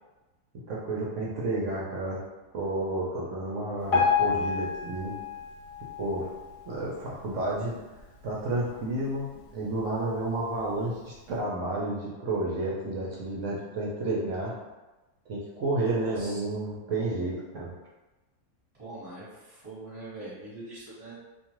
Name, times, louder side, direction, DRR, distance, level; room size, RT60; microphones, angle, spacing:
voice 1, 0.7-2.2 2.5-5.1 6.0-6.3 6.6-7.8 8.2-14.5 15.3-17.7, right 2 dB, 65° right, -5 dB, 0.8 m, -31 dB
Piano, 3.9-7.0 7.5-7.7 8.0-8.1 8.8-8.9 9.5-9.6, left 6 dB, 80° left, 1.2 m, -29 dB
voice 2, 15.8-16.4 18.8-21.2, right 2 dB, 25° right, -10 dB, 1.0 m, -43 dB
2.5 x 2.3 x 2.9 m, 1.1 s
omnidirectional pair, 1.7 m